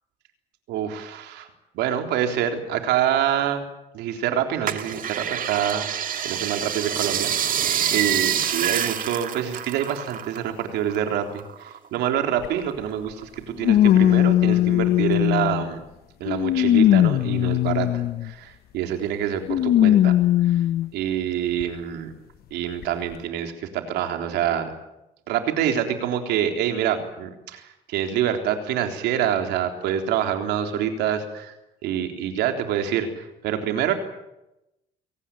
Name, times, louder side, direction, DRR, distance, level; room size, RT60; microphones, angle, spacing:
voice 1, 0.7-1.5 1.7-3.7 3.9-15.8 16.2-20.2 20.4-20.6 20.9-22.1 22.5-24.7 25.3-31.5 31.8-33.9, right 9 dB, 85° right, 5 dB, 3.7 m, -26 dB
sound 1, 4.7-10.5 10.8-12.1 12.5-13.4 13.8-13.9, right 9 dB, 55° right, 1.9 m, -27 dB
sound 2, 12.4-12.5 13.6-15.7 16.3-18.3 19.5-20.9 21.6-21.7 22.8-22.9, left 12 dB, 65° left, 0.9 m, -19 dB
24.0 x 18.5 x 9.1 m, 0.92 s
cardioid pair, 110°, 17 cm